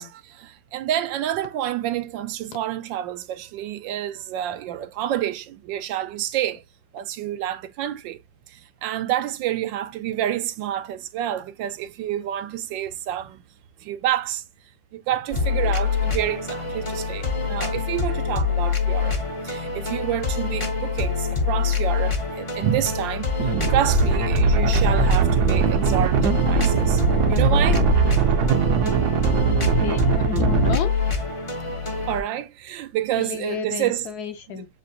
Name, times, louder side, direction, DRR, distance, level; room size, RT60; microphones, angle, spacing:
voice 1, 0.0-6.6 6.9-8.2 8.5-13.4 13.8-14.4 14.9-19.2 19.4-23.3 23.7-27.8 32.1-34.1 34.5-34.6, right 11 dB, 80° right, 1.4 m, -28 dB
sound 1, 15.3-32.2, left 5 dB, 40° left, 0.4 m, -25 dB
sound 2, 23.4-30.7, right 6 dB, 65° right, 1.1 m, -20 dB
voice 2, 29.8-30.9 33.2-34.7, left 7 dB, 65° left, 1.1 m, -31 dB
7.3 x 2.5 x 2.5 m
omnidirectional pair, 2.0 m